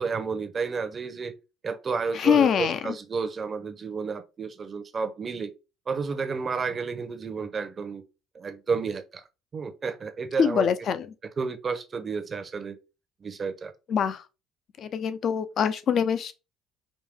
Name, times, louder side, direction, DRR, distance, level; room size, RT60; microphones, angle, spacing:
voice 1, 0.0-1.3 1.6-5.5 5.9-8.0 8.3-9.2 9.5-10.7 11.4-12.8 13.2-13.7, right 5 dB, 35° right, 0.8 m, -31 dB
voice 2, 2.1-2.9 10.4-11.1 13.9-14.2 14.8-16.3, left 7 dB, 55° left, 0.6 m, -24 dB
5.2 x 2.6 x 3.6 m
cardioid pair, 110°, 0 cm